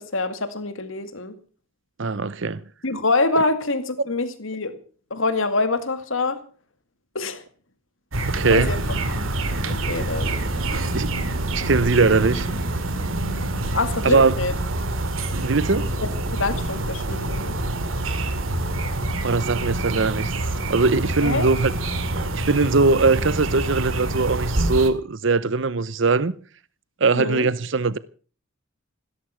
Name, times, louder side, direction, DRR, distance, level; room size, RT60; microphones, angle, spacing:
voice 1, 0.0-1.4 2.8-4.7 5.1-6.4 7.1-7.4 8.5-8.8 9.1-9.2 9.4-10.3 13.7-14.5 16.0-17.6 21.2-21.5 27.2-27.5, left 3 dB, 75° left, 2.2 m, -25 dB
voice 2, 2.0-2.6 3.4-3.5 8.3-8.7 10.9-11.1 11.5-12.5 14.0-14.4 15.3-15.9 19.2-20.3 20.7-21.7 22.3-26.3 27.0-28.0, right 4 dB, 65° right, 0.7 m, -21 dB
sound 1, 8.1-24.9, right 2 dB, 85° right, 2.2 m, -26 dB
16.5 x 13.5 x 5.9 m
head